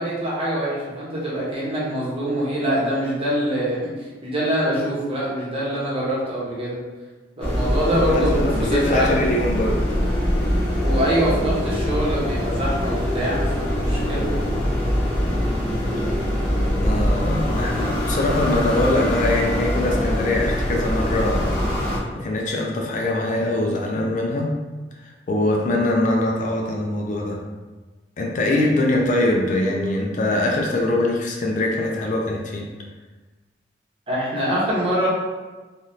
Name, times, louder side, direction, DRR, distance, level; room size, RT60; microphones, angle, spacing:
voice 1, 0.0-6.8 7.4-9.2 10.7-14.3 28.5-28.6 34.1-35.1, right 1 dB, 35° right, -7 dB, 0.9 m, -24 dB
sound 1, 7.4-22.0, equal, 5° left, 0.7 m, -23 dB
voice 2, 8.1-9.9 16.7-21.6 21.8-24.6 25.0-27.4 28.2-32.7, left 1 dB, 45° left, 0 dB, 0.4 m, -23 dB
3.4 x 2.3 x 2.7 m, 1.3 s
head